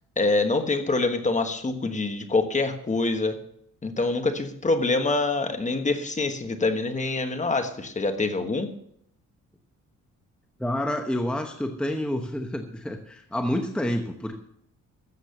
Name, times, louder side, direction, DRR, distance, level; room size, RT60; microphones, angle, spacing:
voice 1, 0.2-3.4 3.8-8.7, left 3 dB, 25° left, 7 dB, 1.3 m, -25 dB
voice 2, 10.6-14.4, left 1 dB, 5° left, 4 dB, 1.0 m, -28 dB
13.5 x 7.7 x 6.6 m, 0.70 s
cardioid pair, 130°, 31 cm